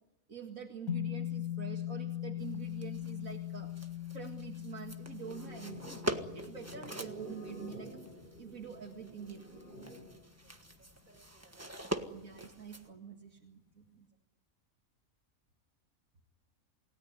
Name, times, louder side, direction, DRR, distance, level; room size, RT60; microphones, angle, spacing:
voice 1, 0.3-3.7 4.1-6.0 6.3-8.0 8.4-9.6 12.1-14.1, right 7 dB, 70° right, 1 dB, 2.4 m, -46 dB
sound 1, 0.9-9.3, left 12 dB, 75° left, 2.3 m, -41 dB
sound 2, 2.4-12.9, right 1 dB, 10° right, 1.4 m, -44 dB
sound 3, 5.2-10.2, equal, 35° left, 7.9 m, -49 dB
voice 2, 10.3-12.2 14.1-14.2, right 3 dB, 35° right, 2 dB, 6.3 m, -67 dB
28.5 x 17.5 x 9.7 m, 0.90 s
omnidirectional pair, 1.5 m